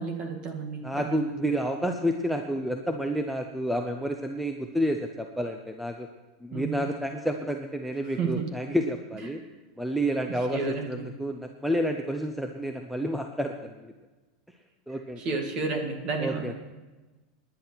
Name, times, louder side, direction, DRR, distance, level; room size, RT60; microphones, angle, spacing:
voice 1, 0.0-1.3 6.5-6.9 8.2-8.5 10.5-11.1 15.2-16.5, right 4 dB, 30° right, 4 dB, 2.0 m, -31 dB
voice 2, 0.8-6.1 6.4-9.4 9.8-13.8 14.9-15.2 16.2-16.5, equal, ahead, 4 dB, 0.6 m, -30 dB
19.0 x 10.5 x 4.5 m, 1.2 s
supercardioid pair, 165°, 3 cm